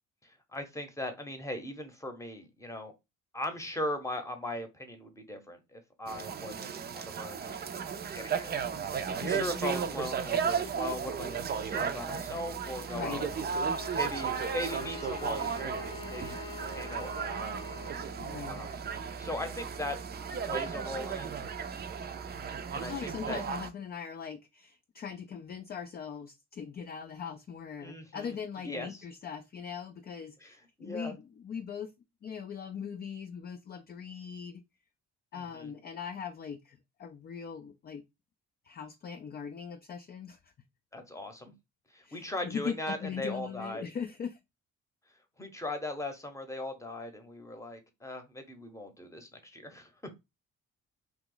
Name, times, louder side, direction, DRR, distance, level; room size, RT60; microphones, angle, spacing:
voice 1, 0.2-2.9 3.3-7.6 8.1-8.6 8.9-13.3 13.9-16.4 16.7-17.6 18.5-18.8 19.2-20.0 20.5-21.3 22.7-23.4 27.8-28.4 28.6-29.0 30.4-31.2 35.3-35.7 40.9-41.5 41.9-43.8 45.4-49.9, left 1 dB, 10° left, 0.8 m, -39 dB
sound 1, 6.1-23.7, right 6 dB, 35° right, 0.4 m, -35 dB
voice 2, 12.9-13.3 18.2-18.7 22.9-31.9 32.2-34.6 35.3-38.0 38.6-40.5 42.0-44.4, left 7 dB, 35° left, 0.4 m, -40 dB
Bowed string instrument, 13.2-18.2, left 4 dB, 70° left, 0.8 m, -44 dB
2.9 x 2.3 x 3.8 m
cardioid pair, 90°, 30 cm